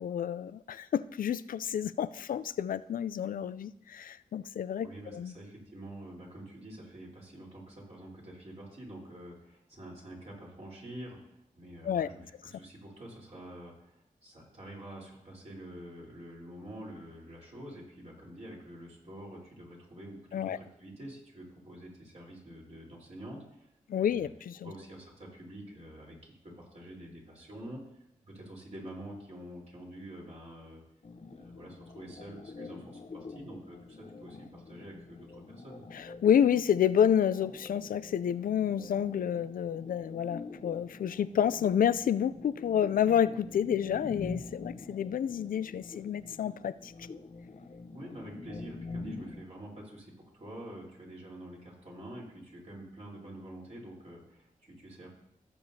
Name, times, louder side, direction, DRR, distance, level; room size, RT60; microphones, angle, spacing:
voice 1, 0.0-5.3 11.8-12.1 20.3-20.6 23.9-24.7 35.9-46.9, left 9 dB, 75° left, 15 dB, 0.4 m, -29 dB
voice 2, 4.8-12.3 12.5-13.9 14.2-23.7 23.9-24.3 24.6-27.8 28.3-30.8 31.3-35.8 47.9-55.1, right 1 dB, 50° right, -4 dB, 3.8 m, -47 dB
sound 1, 31.0-49.4, left 3 dB, 50° left, 0.8 m, -46 dB
17.0 x 6.9 x 2.8 m, 0.79 s
cardioid pair, 55°, 14 cm